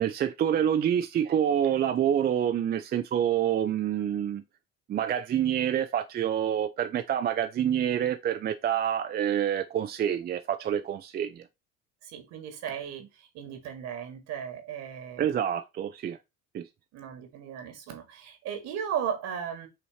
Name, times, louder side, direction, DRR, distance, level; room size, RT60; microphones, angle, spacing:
voice 1, 0.0-4.4 4.9-11.4 15.2-16.2 16.5-16.7, right 9 dB, 35° right, 0.5 m, -27 dB
voice 2, 12.0-15.3 16.9-19.7, right 8 dB, 65° right, 1.8 m, -36 dB
5.6 x 3.1 x 2.9 m
supercardioid pair, 90°, 29 cm